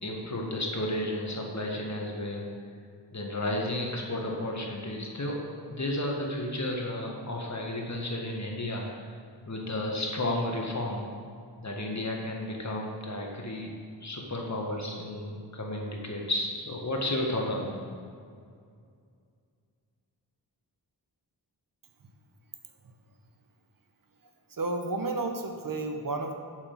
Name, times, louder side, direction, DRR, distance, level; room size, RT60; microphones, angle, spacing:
voice 1, 0.0-2.4 3.1-9.1 9.5-11.1 11.6-13.7 14.0-17.8, left 1 dB, 40° left, 0 dB, 1.8 m, -32 dB
voice 2, 24.5-26.3, right 3 dB, 50° right, 5 dB, 1.1 m, -31 dB
7.1 x 6.8 x 5.6 m, 2.2 s
cardioid pair, 50°, 42 cm